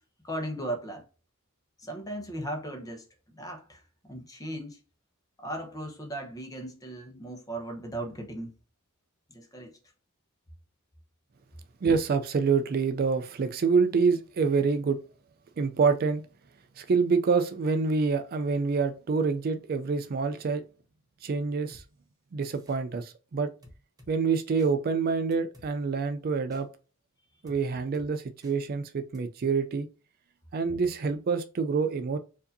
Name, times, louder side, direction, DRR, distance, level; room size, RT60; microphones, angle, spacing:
voice 1, 0.2-1.0 1.8-4.8 5.4-8.5 9.3-9.8, right 1 dB, 15° left, 0.9 m, -37 dB
voice 2, 11.8-15.0 15.6-16.2 16.8-20.6 21.2-21.8 22.3-23.5 24.1-26.7 27.4-29.9 30.5-32.2, right 5 dB, 45° right, 0.3 m, -26 dB
sound 1, 21.7-21.9 22.4-22.8 23.6-24.1 24.6-24.7 25.3-25.7 26.5-26.6 27.5-27.6 27.9-28.1 28.4-28.6 29.1-29.2, equal, 15° right, 0.9 m, -53 dB
4.5 x 2.7 x 2.6 m
head